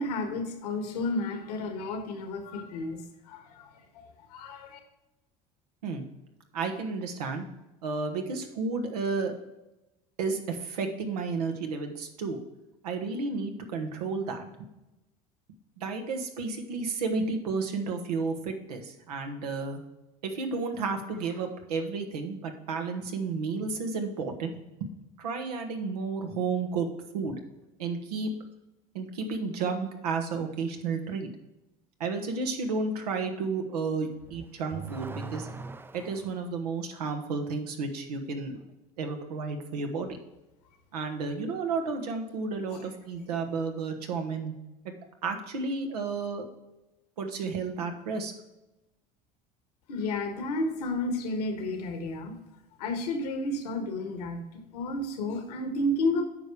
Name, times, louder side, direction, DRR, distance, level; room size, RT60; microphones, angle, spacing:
voice 1, 0.0-3.0 3.3-3.7 4.3-4.8 49.9-52.4 52.8-56.2, left 2 dB, 90° left, 5 dB, 1.6 m, -31 dB
voice 2, 6.5-7.4 7.8-9.4 10.2-12.4 12.8-14.5 15.8-19.8 20.2-24.5 24.8-24.9 25.2-27.4 27.8-28.3 28.9-31.3 32.0-35.5 35.9-38.7 39.0-40.2 40.9-44.5 45.2-46.4 47.2-48.3, right 4 dB, 90° right, 5 dB, 1.3 m, -32 dB
Car / Accelerating revving vroom, 34.2-36.4, right 4 dB, 10° right, 0.4 m, -41 dB
9.2 x 5.4 x 4.8 m, 0.98 s
hypercardioid pair, 85°, 20 cm